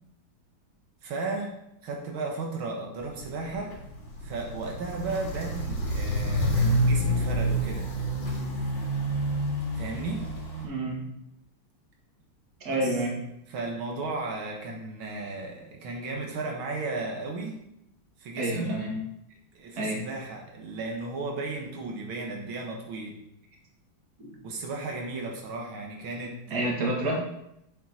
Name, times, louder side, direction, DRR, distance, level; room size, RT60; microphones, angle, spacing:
voice 1, 1.0-1.5 1.8-3.8 4.2-7.9 9.8-10.3 12.7-12.9 13.5-17.6 18.2-18.8 19.6-23.1 24.4-26.7, right 3 dB, 90° right, 0 dB, 2.1 m, -34 dB
Walk footsteps, 3.0-10.7, equal, 70° left, 2.8 m, -28 dB
voice 2, 10.6-11.0 12.6-13.1 18.4-19.0 19.8-20.1 24.2-24.3 26.5-27.2, right 1 dB, 50° right, -1 dB, 2.3 m, -29 dB
7.9 x 7.4 x 4.2 m, 0.80 s
omnidirectional pair, 2.2 m